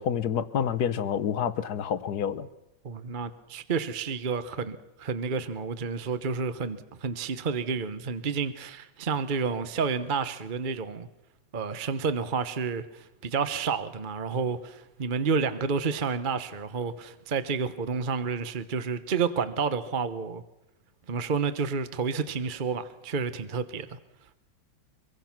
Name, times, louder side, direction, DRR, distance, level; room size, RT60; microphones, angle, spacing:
voice 1, 0.0-2.5, left 8 dB, 60° left, 11 dB, 1.4 m, -28 dB
voice 2, 2.8-11.1 11.5-20.4 21.1-24.0, right 5 dB, 35° right, 11 dB, 0.9 m, -30 dB
24.0 x 23.5 x 6.0 m, 0.90 s
omnidirectional pair, 2.2 m